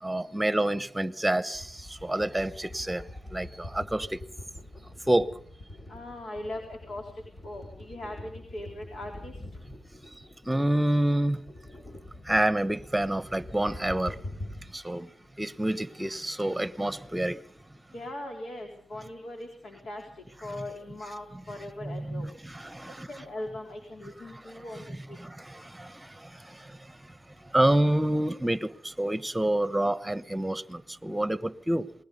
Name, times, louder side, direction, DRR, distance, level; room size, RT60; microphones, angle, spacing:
voice 1, 0.0-3.0 3.3-4.2 5.1-5.3 10.5-11.4 12.2-14.2 14.7-15.1 15.4-17.4 21.8-23.1 24.3-24.4 24.7-26.8 27.5-31.9, right 1 dB, 10° right, 1.1 m, -28 dB
sound 1, 1.5-14.8 15.3-15.4 15.6-15.8 16.1-16.2 16.4-17.8, left 1 dB, 50° left, 4.3 m, -45 dB
voice 2, 5.9-7.1 7.4-9.3 17.9-20.0 20.4-22.3 23.1-25.2, left 1 dB, 85° left, 3.8 m, -40 dB
28.0 x 20.5 x 5.4 m
cardioid pair, 85°, 0 cm